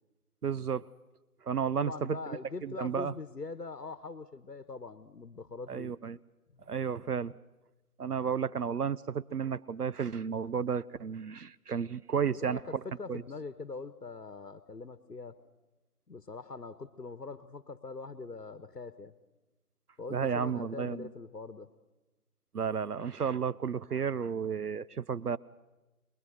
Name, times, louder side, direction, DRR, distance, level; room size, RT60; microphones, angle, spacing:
voice 1, 0.4-0.8 1.4-2.2 2.6-3.1 5.7-6.2 6.7-7.3 8.0-12.6 13.1-13.2 20.1-21.1 22.5-25.4, right 7 dB, 75° right, 17 dB, 0.7 m, -32 dB
voice 2, 1.8-5.9 6.6-6.7 12.3-15.4 16.1-19.1 20.0-21.7, left 4 dB, 80° left, 13 dB, 1.3 m, -43 dB
23.5 x 22.0 x 6.4 m, 1.1 s
figure-of-eight pair, 160°, 47 cm